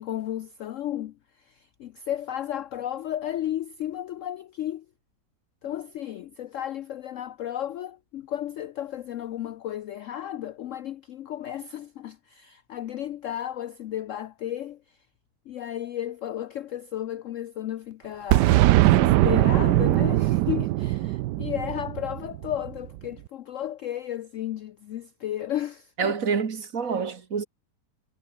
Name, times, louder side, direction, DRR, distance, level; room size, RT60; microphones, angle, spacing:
voice 1, 0.0-4.9 5.6-15.0 15.5-26.2, left 11 dB, 70° left, 0.7 m, -34 dB
Boom, 18.3-23.0, right 16 dB, 80° right, 1.2 m, -21 dB
voice 2, 26.0-27.5, right 6 dB, 50° right, 2.0 m, -27 dB
omnidirectional pair, 1.8 m